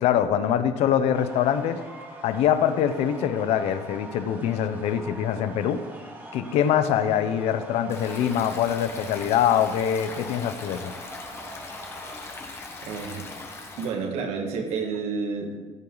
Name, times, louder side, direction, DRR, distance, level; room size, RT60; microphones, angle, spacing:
voice 1, 0.0-1.8 2.2-5.8 6.3-10.9, left 9 dB, 90° left, 11 dB, 0.8 m, -24 dB
sound 1, 1.1-12.1, right 2 dB, 20° right, 2.5 m, -44 dB
Stream, 7.9-13.9, left 3 dB, 25° left, 1.3 m, -40 dB
voice 2, 12.0-13.3 13.8-15.5, right 5 dB, 85° right, 3 dB, 2.0 m, -31 dB
15.5 x 8.8 x 4.0 m, 1.4 s
cardioid pair, 180°, 11 cm